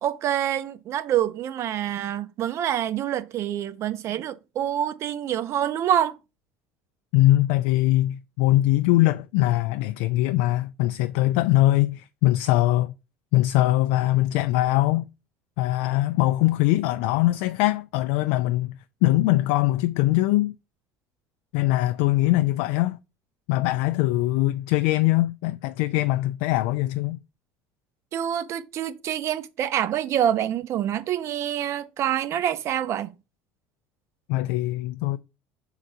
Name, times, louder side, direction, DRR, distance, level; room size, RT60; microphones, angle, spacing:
voice 1, 0.0-6.2 28.1-33.1, right 10 dB, 55° right, 0.9 m, -26 dB
voice 2, 7.1-12.9 13.3-15.1 15.6-20.5 21.5-23.0 23.5-27.2 34.3-35.2, left 16 dB, 75° left, 0.4 m, -22 dB
6.0 x 3.9 x 4.5 m
supercardioid pair, 80°, 6 cm